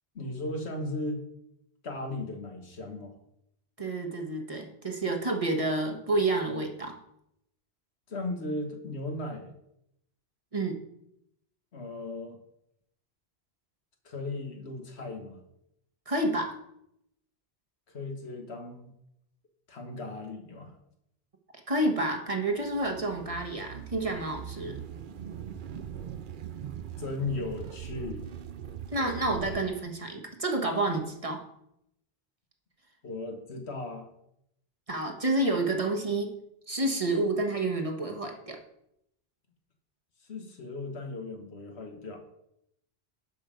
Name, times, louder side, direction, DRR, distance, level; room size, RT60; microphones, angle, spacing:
voice 1, 0.2-1.2 1.8-3.2 8.1-9.5 11.7-12.4 14.1-15.4 17.9-18.9 19.7-20.8 27.0-28.3 33.0-34.1 40.3-42.2, left 2 dB, 80° left, 4 dB, 1.7 m, -36 dB
voice 2, 3.8-7.0 10.5-10.8 16.1-16.6 21.7-24.8 28.9-31.4 34.9-36.3 36.7-38.6, right 2 dB, 30° right, 2 dB, 1.4 m, -29 dB
sound 1, 22.6-29.7, right 9 dB, 55° right, 0.7 m, -41 dB
12.0 x 5.4 x 5.2 m, 0.79 s
omnidirectional pair, 1.1 m